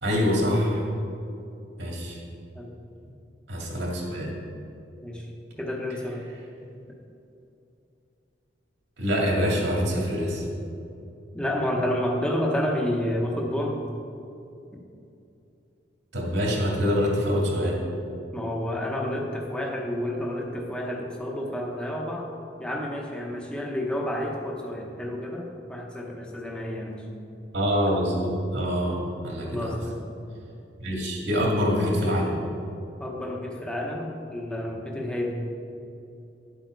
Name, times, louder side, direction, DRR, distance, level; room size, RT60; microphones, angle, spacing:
voice 1, 0.0-0.8 1.8-2.2 3.5-4.3 9.0-10.5 16.1-17.8 27.5-29.7 30.8-32.4, equal, 80° right, -2 dB, 2.6 m, -25 dB
voice 2, 5.6-6.3 11.3-13.9 14.7-14.8 18.3-22.3 22.6-27.1 29.4-30.1 33.0-35.5, left 1 dB, 5° left, -1 dB, 1.0 m, -30 dB
10.0 x 7.8 x 4.7 m, 2.7 s
head